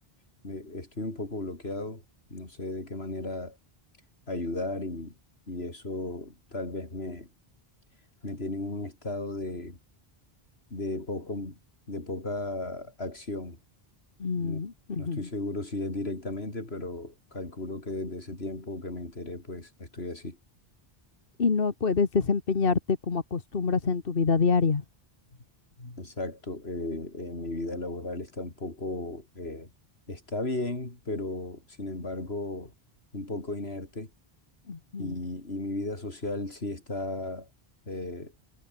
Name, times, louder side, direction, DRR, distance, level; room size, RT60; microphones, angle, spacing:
voice 1, 0.4-2.0 2.3-3.6 4.3-5.1 5.5-7.3 8.2-9.8 10.7-11.6 11.9-13.6 14.4-14.6 15.0-20.4 25.8-29.7 30.1-32.7 33.1-34.1 35.0-37.5 37.9-38.3, left 2 dB, 85° left, 4.7 m, -35 dB
voice 2, 14.2-15.3 21.4-24.8 34.7-35.1, left 5 dB, 65° left, 1.7 m, -26 dB
omnidirectional pair, 1.0 m